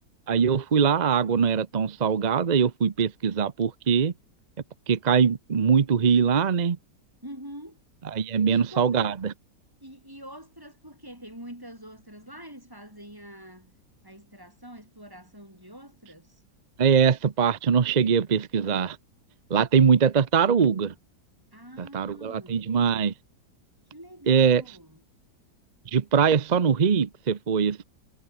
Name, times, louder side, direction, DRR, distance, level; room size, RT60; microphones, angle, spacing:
voice 1, 0.3-4.1 4.9-6.8 8.1-9.3 16.8-19.0 19.5-20.9 21.8-23.1 24.3-24.6 25.9-27.8, right 6 dB, 45° right, 0.5 m, -22 dB
voice 2, 7.2-7.8 8.5-9.2 9.8-13.7 14.0-16.4 21.5-22.7 23.9-25.0, equal, 10° right, 7.4 m, -44 dB
omnidirectional pair, 1.9 m